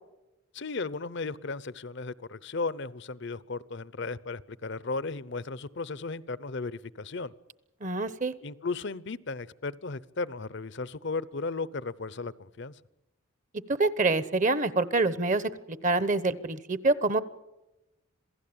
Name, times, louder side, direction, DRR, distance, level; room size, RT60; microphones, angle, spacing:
voice 1, 0.5-7.3 8.4-12.7, left 3 dB, 55° left, 19 dB, 0.7 m, -35 dB
voice 2, 7.8-8.3 13.7-17.2, right 3 dB, 35° right, 16 dB, 0.9 m, -26 dB
27.5 x 17.0 x 8.7 m, 0.97 s
head